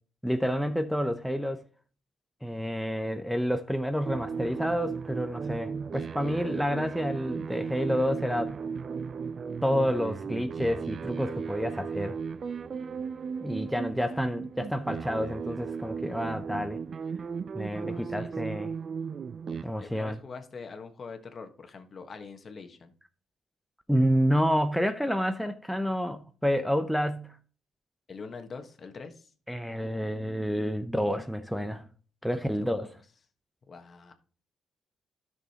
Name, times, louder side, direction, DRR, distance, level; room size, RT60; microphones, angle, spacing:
voice 1, 0.2-1.6 2.4-8.6 9.6-12.2 13.4-16.8 17.5-18.7 19.6-20.2 23.9-27.3 29.5-31.8 32.2-32.9, equal, ahead, 0.6 m, -29 dB
sound 1, 4.0-19.6, right 6 dB, 45° right, 0.4 m, -36 dB
voice 2, 17.7-18.5 19.8-22.9 28.1-29.3 32.3-32.9 33.7-34.1, left 4 dB, 40° left, 1.3 m, -44 dB
12.5 x 6.2 x 2.9 m
cardioid pair, 90°, 0 cm